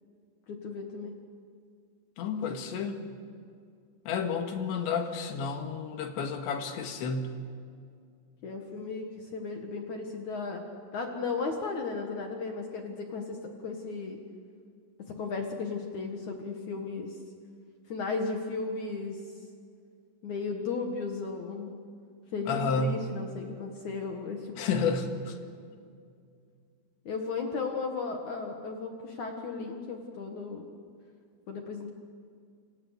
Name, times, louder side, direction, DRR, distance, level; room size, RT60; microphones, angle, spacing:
voice 1, 0.5-1.1 2.5-2.6 8.4-10.6 10.9-14.2 15.1-17.2 17.9-19.2 20.2-21.7 22.3-24.5 24.8-24.9 27.1-30.6 31.5-31.9, left 4 dB, 55° left, 3 dB, 2.3 m, -35 dB
voice 2, 2.2-3.2 4.1-7.4 22.5-23.0 24.6-25.4, left 5 dB, 80° left, 5 dB, 4.0 m, -31 dB
28.5 x 25.5 x 6.7 m, 2.3 s
omnidirectional pair, 5.2 m